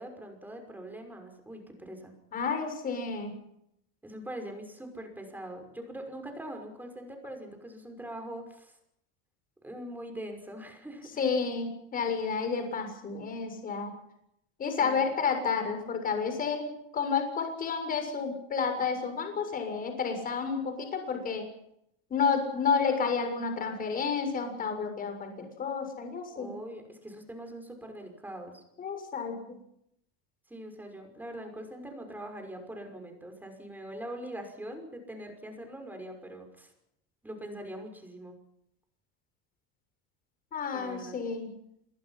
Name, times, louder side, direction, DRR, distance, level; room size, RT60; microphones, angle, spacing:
voice 1, 0.0-2.1 4.0-8.7 9.6-11.2 14.8-15.2 26.3-28.6 30.5-36.7 37.2-38.4 40.7-41.2, right 1 dB, 5° right, 5 dB, 5.9 m, -42 dB
voice 2, 2.3-3.3 11.2-13.9 14.6-21.5 22.1-26.5 28.8-29.6 40.5-41.5, left 5 dB, 25° left, 6 dB, 7.0 m, -30 dB
27.5 x 22.5 x 5.9 m, 0.77 s
cardioid pair, 155°, 32 cm